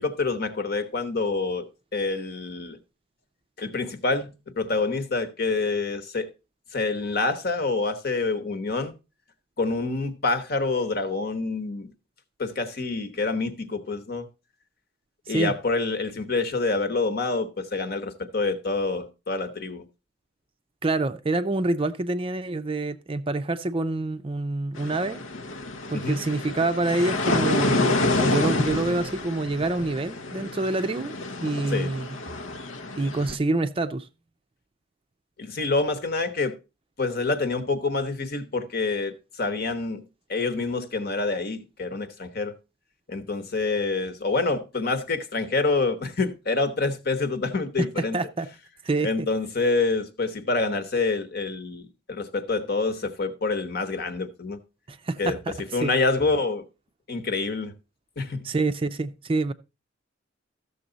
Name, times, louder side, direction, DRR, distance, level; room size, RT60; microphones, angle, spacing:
voice 1, 0.0-2.8 3.6-6.3 6.7-8.9 9.6-11.9 12.4-14.3 15.3-19.8 25.9-26.2 31.7-31.9 35.4-36.6 37.0-42.5 43.1-48.2 49.0-54.6 55.2-55.4 55.7-56.6 57.1-57.7 58.2-58.4, left 3 dB, 50° left, 1.1 m, -27 dB
voice 2, 20.8-25.2 25.9-31.1 31.4-32.2 33.0-34.1 47.8-48.5 48.8-49.3 54.9-55.5 55.8-55.9 58.4-59.5, right 2 dB, 30° right, 0.4 m, -27 dB
sound 1, 24.8-33.4, left 2 dB, 85° left, 0.9 m, -28 dB
13.5 x 6.9 x 3.9 m
head